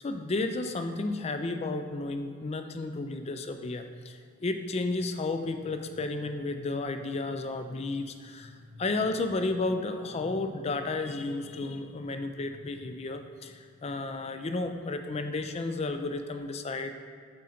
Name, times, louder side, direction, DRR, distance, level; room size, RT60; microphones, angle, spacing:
voice 1, 0.0-16.9, left 2 dB, 30° left, 7 dB, 0.4 m, -32 dB
7.8 x 5.0 x 4.2 m, 2.1 s
head